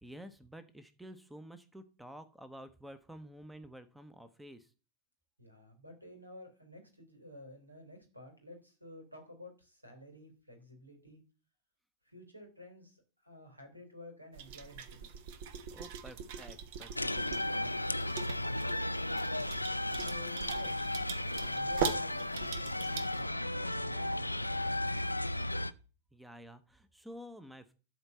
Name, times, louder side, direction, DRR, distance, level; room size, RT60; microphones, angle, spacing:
voice 1, 0.0-4.7 15.7-17.7 26.1-27.7, equal, 5° right, 13 dB, 0.9 m, -51 dB
voice 2, 5.4-11.2 12.1-13.0 13.2-15.2 19.9-21.0 21.4-25.0, left 1 dB, 85° right, 4 dB, 3.5 m, -52 dB
sound 1, 14.3-23.2, right 7 dB, 50° right, 1.2 m, -41 dB
sound 2, 17.0-25.7, left 1 dB, 85° left, 0.4 m, -34 dB
12.5 x 4.5 x 7.7 m, 0.36 s
figure-of-eight pair, 90°, 0 cm